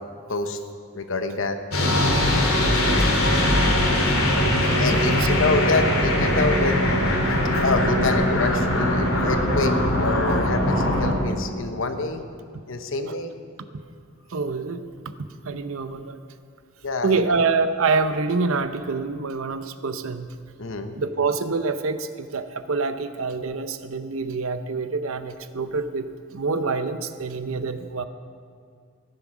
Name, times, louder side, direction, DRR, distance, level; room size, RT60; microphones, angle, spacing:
voice 1, 0.9-1.6 4.8-6.8 7.6-12.2 12.7-13.3 16.8-17.2 20.6-21.0, left 3 dB, 65° left, 7 dB, 1.0 m, -26 dB
sound 1, 1.7-11.1, left 1 dB, 85° left, 2.6 m, -21 dB
voice 2, 3.2-3.6 4.1-5.3 7.2-7.4 13.1-13.2 14.3-14.8 15.4-16.2 17.0-20.3 21.0-26.1 26.3-28.0, right 4 dB, 70° right, 10 dB, 0.7 m, -26 dB
14.5 x 9.6 x 6.1 m, 2.2 s
head